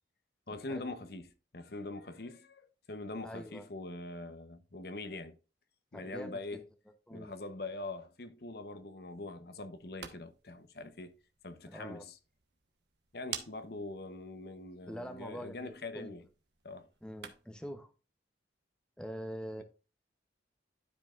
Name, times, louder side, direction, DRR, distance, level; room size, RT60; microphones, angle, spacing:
voice 1, 0.5-1.3 1.5-5.4 5.9-6.6 7.1-11.1 11.4-12.2 13.1-16.3 16.6-16.9, left 2 dB, 55° left, 0.9 m, -43 dB
voice 2, 3.2-3.7 5.9-6.6 7.1-7.3 11.7-12.0 14.8-16.2 17.0-17.9 19.0-19.6, equal, 5° left, 0.8 m, -44 dB
sound 1, 9.7-17.7, right 9 dB, 65° right, 1.1 m, -51 dB
12.5 x 5.3 x 2.4 m
head